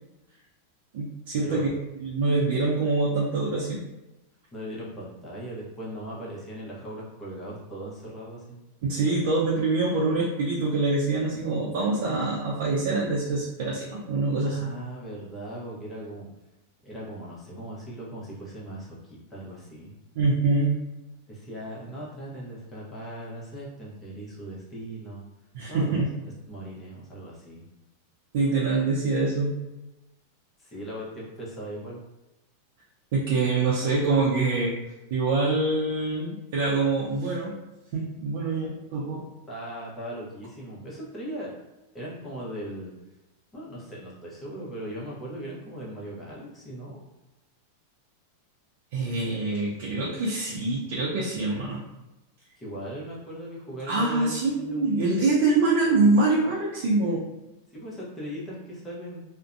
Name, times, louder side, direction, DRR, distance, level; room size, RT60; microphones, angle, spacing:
voice 1, 0.9-1.7 2.0-3.8 8.8-14.6 20.2-20.8 25.5-26.1 28.3-29.6 33.1-34.8 35.1-37.6 37.9-39.3 48.9-51.8 53.9-57.3, right 3 dB, 65° right, -5 dB, 0.5 m, -25 dB
voice 2, 4.5-8.6 14.4-16.3 16.8-19.9 21.3-25.2 25.7-26.0 26.5-27.6 30.6-32.0 39.5-41.5 41.9-42.9 43.5-47.0 52.6-55.0 57.7-59.2, right 1 dB, 15° left, -6 dB, 0.8 m, -38 dB
2.5 x 2.1 x 2.5 m, 1.0 s
supercardioid pair, 145°, 0 cm